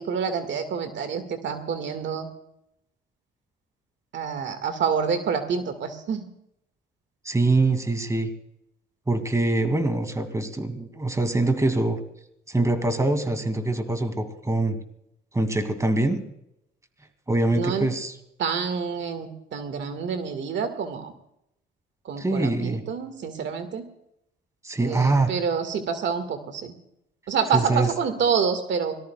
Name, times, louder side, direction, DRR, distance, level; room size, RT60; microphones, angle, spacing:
voice 1, 0.0-2.3 4.1-6.2 17.5-17.9 18.4-21.1 22.1-23.9 24.8-26.7 27.3-29.0, right 6 dB, 65° right, 8 dB, 1.8 m, -27 dB
voice 2, 7.3-8.3 9.1-12.0 12.5-14.8 15.3-16.2 17.3-18.2 22.2-22.8 24.6-25.3 27.5-27.9, right 2 dB, 15° right, 8 dB, 2.4 m, -24 dB
26.0 x 19.0 x 2.3 m, 0.78 s
cardioid pair, 90°, 20 cm